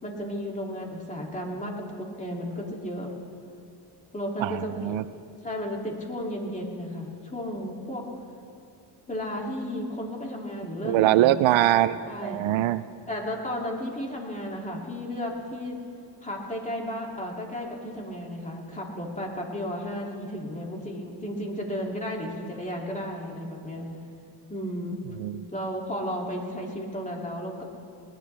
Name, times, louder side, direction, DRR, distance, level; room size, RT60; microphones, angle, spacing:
voice 1, 0.0-3.1 4.1-5.0 5.4-8.0 9.1-11.4 12.1-12.5 13.1-15.8 16.2-23.9 24.5-25.1 25.5-27.6, equal, 15° left, -1 dB, 2.7 m, -33 dB
voice 2, 4.4-5.0 10.8-12.8 25.2-25.4, right 14 dB, 80° right, 14 dB, 0.6 m, -23 dB
20.0 x 19.5 x 3.4 m, 2.4 s
cardioid pair, 115°, 46 cm